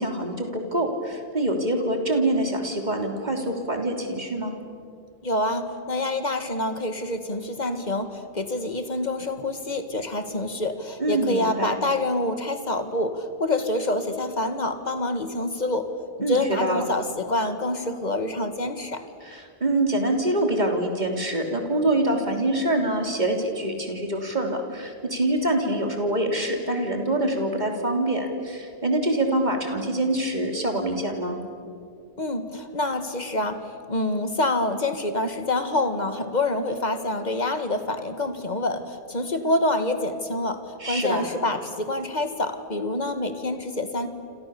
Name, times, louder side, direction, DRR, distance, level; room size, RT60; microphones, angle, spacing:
voice 1, 0.0-4.5 11.0-11.7 16.2-16.9 19.2-31.4 40.8-41.3, right 1 dB, 45° right, 3 dB, 3.4 m, -25 dB
voice 2, 5.2-15.9 16.3-19.0 32.2-44.1, left 2 dB, 40° left, 8 dB, 2.0 m, -27 dB
29.0 x 27.0 x 7.1 m, 2.4 s
omnidirectional pair, 1.1 m